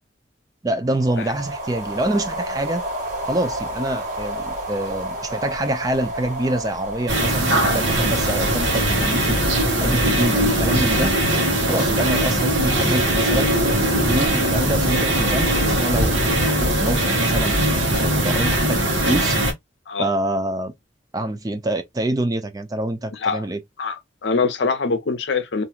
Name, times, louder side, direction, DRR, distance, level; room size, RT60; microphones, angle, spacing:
voice 1, 0.6-2.8 3.2-9.4 9.8-11.1 11.7-13.5 14.0-19.4 20.0-20.7 21.1-23.6, right 1 dB, 20° right, 0.4 m, -26 dB
sound 1, 0.9-10.3, right 1 dB, 40° right, 1.2 m, -32 dB
sound 2, 7.1-19.5, right 1 dB, 85° right, 1.0 m, -20 dB
voice 2, 23.1-23.5 23.8-25.6, left 4 dB, 70° left, 0.6 m, -24 dB
2.9 x 2.5 x 2.3 m
head